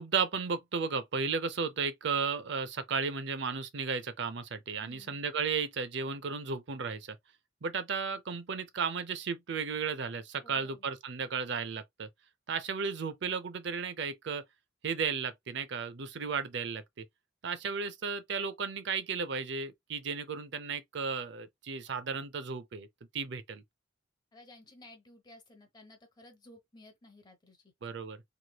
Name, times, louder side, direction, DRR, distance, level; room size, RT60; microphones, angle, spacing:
voice 1, 0.0-7.2 7.6-12.1 12.5-14.4 14.8-17.0 17.4-22.9 23.1-23.6 27.8-28.2, right 5 dB, 65° right, 0.5 m, -34 dB
voice 2, 4.8-5.2 10.4-10.9 24.3-27.7, left 2 dB, 25° left, 1.0 m, -55 dB
3.2 x 2.9 x 2.2 m
head